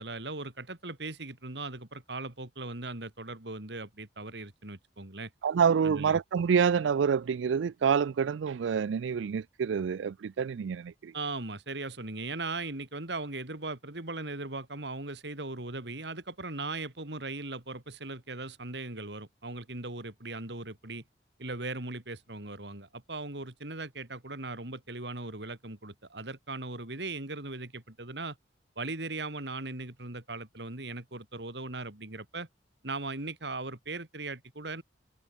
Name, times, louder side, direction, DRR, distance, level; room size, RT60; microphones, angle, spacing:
voice 1, 0.0-5.3 5.8-6.2 11.1-21.0 21.4-28.4 28.8-32.5 32.8-34.8, right 3 dB, 65° right, 2.9 m, -38 dB
voice 2, 5.4-11.1, right 6 dB, 90° right, 0.4 m, -27 dB
head